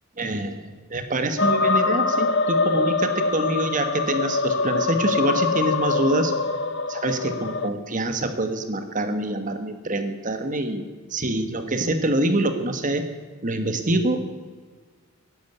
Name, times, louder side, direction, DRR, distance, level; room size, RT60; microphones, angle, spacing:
voice 1, 0.2-0.6 0.9-6.3 6.9-13.1 13.4-14.2, right 1 dB, 35° right, 8 dB, 1.3 m, -25 dB
sound 1, 1.4-7.7, left 3 dB, 60° left, 1.1 m, -24 dB
12.5 x 11.5 x 9.5 m, 1.5 s
head